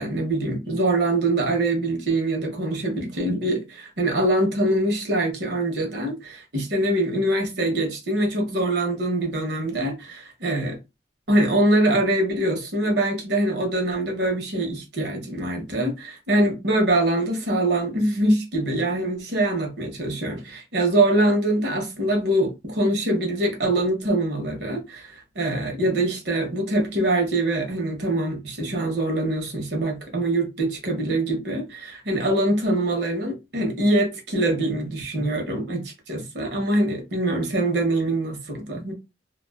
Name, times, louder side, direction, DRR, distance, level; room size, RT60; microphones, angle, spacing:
voice 1, 0.0-10.8 11.3-38.9, right 1 dB, 65° right, 0.9 m, -24 dB
2.3 x 2.3 x 2.3 m
head